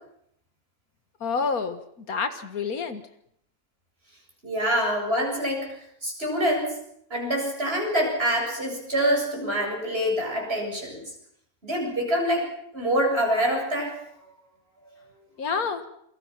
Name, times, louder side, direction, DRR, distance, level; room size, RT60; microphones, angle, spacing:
voice 1, 1.2-3.0 15.4-15.8, left 5 dB, 80° left, 8 dB, 2.0 m, -28 dB
voice 2, 4.4-5.7 6.0-6.7 7.1-11.0 11.6-12.5 12.7-13.9, equal, 45° right, 0 dB, 8.0 m, -25 dB
28.0 x 23.0 x 6.0 m, 0.73 s
omnidirectional pair, 1.5 m